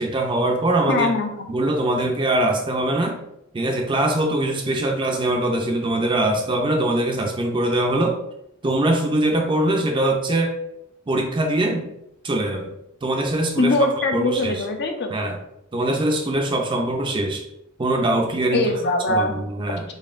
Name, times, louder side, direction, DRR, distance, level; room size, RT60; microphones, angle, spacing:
voice 1, 0.0-1.1 1.5-3.2 3.5-8.2 8.6-10.5 11.1-11.9 12.2-12.7 13.0-13.9 14.1-14.6 15.1-15.4 15.7-17.5 17.8-18.7 19.1-19.8, right 1 dB, 25° right, 3 dB, 0.4 m, -22 dB
voice 2, 0.9-1.5 13.6-15.2 18.5-19.3, left 2 dB, 50° left, 4 dB, 0.5 m, -22 dB
4.0 x 3.5 x 2.5 m, 0.83 s
head